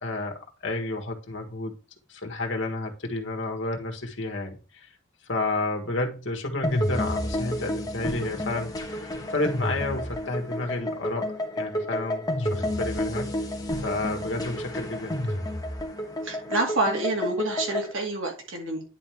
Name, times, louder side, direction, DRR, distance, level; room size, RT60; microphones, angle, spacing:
voice 1, 0.0-1.7 2.1-4.9 5.3-9.0 9.3-13.3 13.8-15.2, left 2 dB, 65° left, 2 dB, 1.5 m, -31 dB
sound 1, 6.6-17.9, left 1 dB, 20° left, 1.1 m, -30 dB
voice 2, 16.2-18.8, right 2 dB, 80° right, 1 dB, 2.3 m, -28 dB
9.9 x 3.6 x 4.5 m, 0.33 s
head